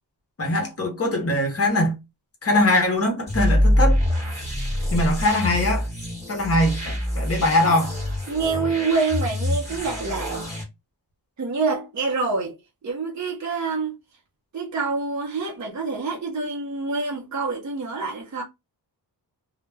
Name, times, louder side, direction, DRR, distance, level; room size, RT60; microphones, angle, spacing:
voice 1, 0.4-2.0 2.4-4.0 4.9-5.9 6.3-7.9, left 1 dB, 35° left, 0.7 m, -22 dB
sound 1, 3.3-10.6, left 1 dB, 15° right, 1.2 m, -25 dB
voice 2, 8.3-10.5 11.4-12.6 12.8-14.0 14.5-18.4, right 4 dB, 45° right, 0.6 m, -26 dB
2.1 x 2.1 x 3.2 m
wide cardioid pair, 180°, 41 cm